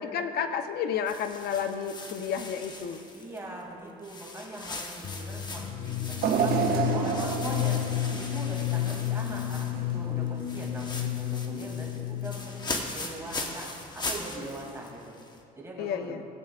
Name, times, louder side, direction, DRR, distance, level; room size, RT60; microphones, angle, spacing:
voice 1, 0.0-3.0 15.8-16.2, left 7 dB, 70° left, 7 dB, 0.7 m, -31 dB
sound 1, 1.1-3.6 4.0-10.0 10.3-15.4, left 2 dB, 25° left, 1.1 m, -40 dB
voice 2, 3.1-7.8 8.1-15.1 15.5-16.2, right 1 dB, 15° right, -3 dB, 2.6 m, -41 dB
sound 2, 5.0-12.7, left 13 dB, 40° left, 0.4 m, -31 dB
sound 3, 6.2-9.4 9.8-9.9 11.0-11.1, right 7 dB, 65° right, 0.7 m, -29 dB
18.5 x 8.7 x 2.4 m, 2.3 s
cardioid pair, 110°, 17 cm